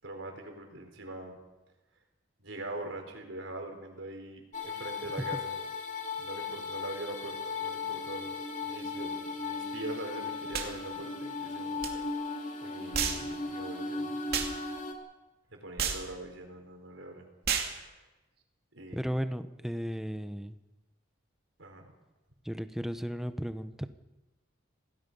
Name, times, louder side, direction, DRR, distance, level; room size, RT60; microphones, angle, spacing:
voice 1, 0.0-1.4 2.4-5.6 6.2-8.3 8.6-12.0 12.3-14.5 15.5-17.3 17.7-18.0 18.7-19.1 21.6-21.9, right 2 dB, 80° right, 3 dB, 4.5 m, -43 dB
sound 1, 4.5-14.9, left 4 dB, 40° left, 2.8 m, -37 dB
sound 2, 10.5-10.7 11.8-11.9 12.9-13.2 14.3-14.5 15.8-16.0 17.4-17.7, right 7 dB, 55° right, 2.6 m, -30 dB
voice 2, 18.9-20.6 22.4-23.9, equal, ahead, 10 dB, 0.9 m, -35 dB
27.0 x 18.5 x 5.5 m, 1.1 s
head